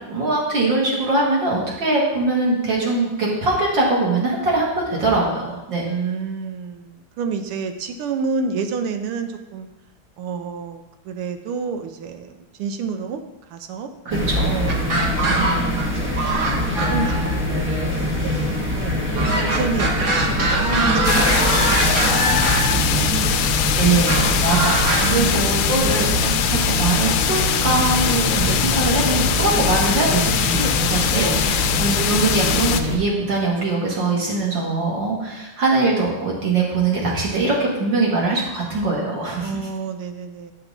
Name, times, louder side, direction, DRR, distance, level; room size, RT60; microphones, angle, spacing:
voice 1, 0.1-5.9 14.1-14.6 23.8-39.5, right 3 dB, 60° right, -4 dB, 2.6 m, -22 dB
voice 2, 5.8-9.7 10.2-13.2 13.5-13.9 14.4-19.0 19.5-21.1 21.4-23.5 24.9-26.0 31.0-32.0 39.4-40.5, right 5 dB, 85° right, 7 dB, 1.6 m, -30 dB
sound 1, 14.1-33.0, left 1 dB, 10° right, 0.8 m, -23 dB
sound 2, 14.7-15.9 16.2-17.4 19.1-22.7 24.1-25.1, right 2 dB, 40° right, 1.3 m, -22 dB
sound 3, 21.0-32.8, left 10 dB, 85° left, 1.5 m, -23 dB
9.5 x 5.9 x 4.0 m, 1.0 s
omnidirectional pair, 2.4 m